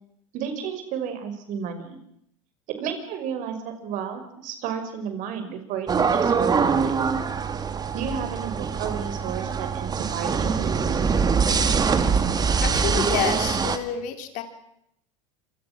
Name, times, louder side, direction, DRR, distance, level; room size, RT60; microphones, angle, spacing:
voice 1, 0.3-2.0 2.8-6.9 7.9-11.0, right 7 dB, 50° right, 8 dB, 6.0 m, -32 dB
sound 1, 5.9-13.8, right 5 dB, 25° right, 2.4 m, -23 dB
voice 2, 12.6-14.4, left 10 dB, 55° left, 7 dB, 4.2 m, -29 dB
27.5 x 25.0 x 6.2 m, 0.75 s
hypercardioid pair, 95°, 16 cm